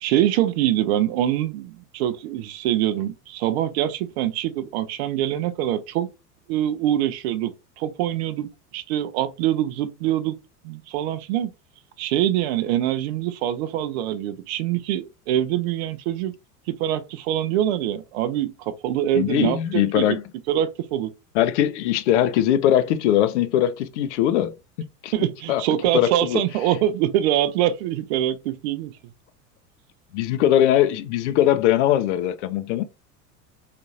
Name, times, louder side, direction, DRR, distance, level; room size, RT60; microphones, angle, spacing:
voice 1, 0.0-6.1 6.5-10.4 10.6-11.5 12.0-16.3 16.7-20.2 20.5-21.1 25.1-28.9, right 12 dB, 45° right, 0.5 m, -24 dB
voice 2, 19.2-20.2 21.3-24.5 25.0-25.1 25.5-25.6 25.9-26.4 30.1-32.8, left 11 dB, 50° left, 0.5 m, -20 dB
3.6 x 2.5 x 2.6 m
figure-of-eight pair, 80°, 48 cm